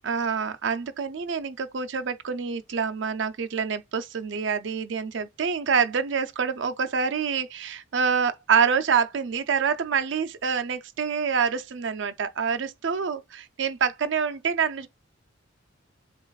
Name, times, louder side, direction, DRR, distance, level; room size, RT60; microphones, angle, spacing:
voice 1, 0.0-14.9, right 6 dB, 65° right, 0.5 m, -26 dB
7.2 x 2.4 x 2.3 m
head